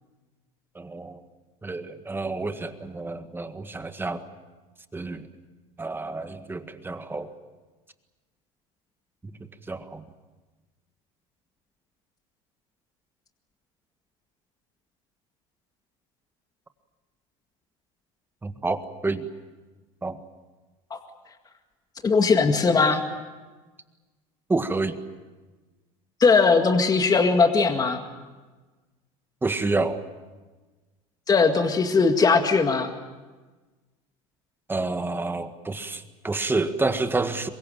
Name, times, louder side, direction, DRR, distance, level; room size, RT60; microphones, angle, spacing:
voice 1, 0.7-1.2 1.6-4.2 4.9-5.3 5.8-7.3 9.2-9.4 9.7-10.0 18.4-19.3 20.0-20.2 24.5-25.0 29.4-30.0 34.7-37.5, right 3 dB, 15° right, 9 dB, 1.7 m, -29 dB
voice 2, 22.0-23.0 26.2-28.0 31.3-32.9, left 4 dB, 25° left, 5 dB, 2.0 m, -19 dB
24.0 x 21.0 x 9.0 m, 1.3 s
supercardioid pair, 110°, 16 cm